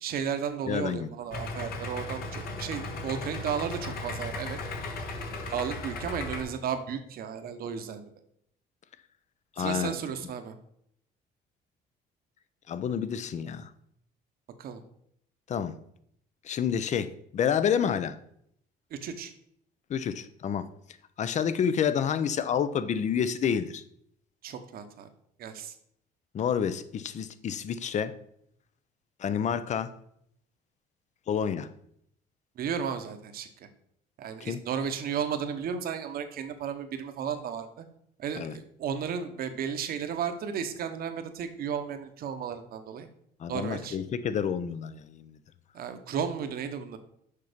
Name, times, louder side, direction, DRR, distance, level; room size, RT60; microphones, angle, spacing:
voice 1, 0.0-4.6 5.5-8.0 9.6-10.5 14.6-14.8 19.0-19.3 24.4-25.1 25.4-25.7 32.6-33.5 34.2-37.8 38.2-43.1 43.5-44.0 45.7-47.0, right 7 dB, 60° right, 1.1 m, -34 dB
voice 2, 0.7-1.1 9.6-9.9 12.7-13.7 15.5-15.8 16.4-18.2 19.9-20.7 21.2-23.8 26.3-28.1 29.2-29.9 31.3-31.7 34.4-34.6 38.4-38.6 43.4-45.4, left 8 dB, 45° left, 0.6 m, -29 dB
Idling, 1.3-6.4, left 2 dB, 65° left, 1.5 m, -36 dB
6.7 x 5.7 x 5.1 m
cardioid pair, 110°, 17 cm